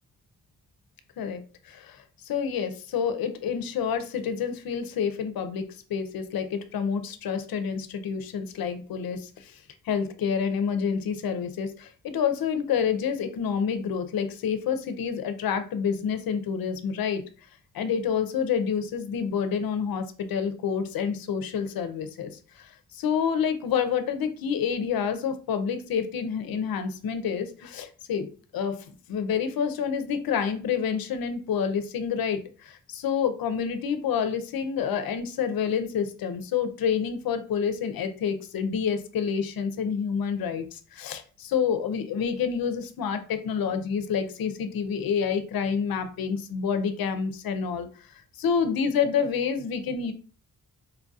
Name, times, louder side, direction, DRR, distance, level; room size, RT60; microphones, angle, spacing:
voice 1, 1.2-9.6 9.9-17.2 17.7-22.3 22.6-28.3 28.5-28.8 29.1-47.9 48.4-50.1, left 7 dB, 85° left, 9 dB, 0.6 m, -28 dB
4.4 x 2.6 x 2.3 m, 0.37 s
cardioid pair, 75°, 35 cm